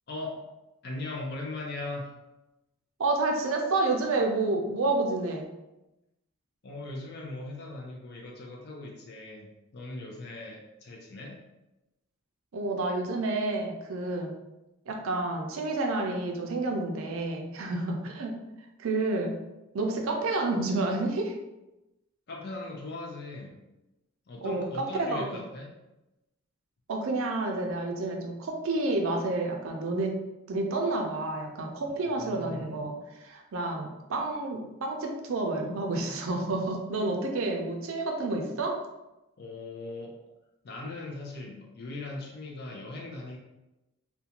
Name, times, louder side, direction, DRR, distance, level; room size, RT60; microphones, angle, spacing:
voice 1, 0.1-0.5 0.8-2.2 6.6-11.4 22.3-23.6 24.3-25.7 31.9-32.8 39.4-40.2 40.6-43.4, left 2 dB, 45° left, -1 dB, 0.4 m, -39 dB
voice 2, 3.0-5.5 12.5-14.3 14.9-18.4 18.8-19.3 19.7-21.3 24.4-25.4 26.9-30.1 30.5-38.8, right 2 dB, 65° right, 2 dB, 0.4 m, -29 dB
2.4 x 2.2 x 2.8 m, 0.97 s
head